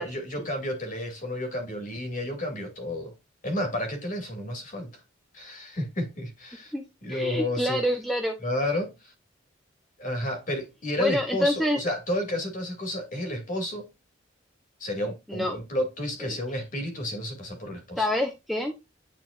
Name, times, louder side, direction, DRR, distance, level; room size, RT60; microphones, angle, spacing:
voice 1, 0.0-3.1 3.4-4.9 5.3-6.7 7.0-7.8 8.4-9.1 10.0-13.9 14.8-18.1, left 1 dB, 45° left, 2.4 m, -31 dB
voice 2, 7.1-8.3 11.0-11.8 15.3-15.5 16.2-16.3 18.0-18.7, left 1 dB, ahead, 0.8 m, -26 dB
9.3 x 4.2 x 2.5 m
head